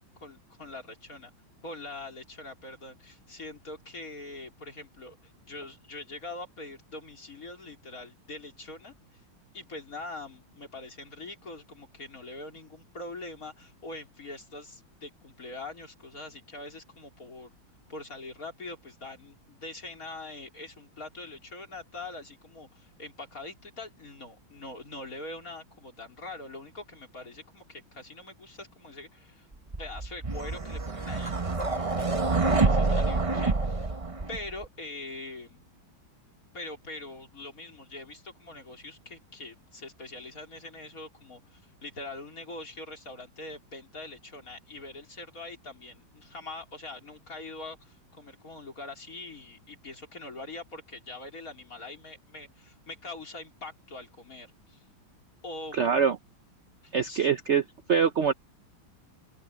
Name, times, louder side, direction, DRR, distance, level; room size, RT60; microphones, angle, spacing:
voice 1, 0.2-1.3 1.6-8.9 9.5-17.5 17.9-29.5 29.8-33.9 34.3-35.6 36.5-54.8 55.4-56.0 56.8-57.3, left 2 dB, 40° left, 4.6 m, -43 dB
sound 1, 29.7-34.6, right 3 dB, 25° right, 0.8 m, -27 dB
voice 2, 55.7-56.2 56.9-57.6 57.9-58.3, right 6 dB, 80° right, 0.6 m, -24 dB
open air
omnidirectional pair, 2.2 m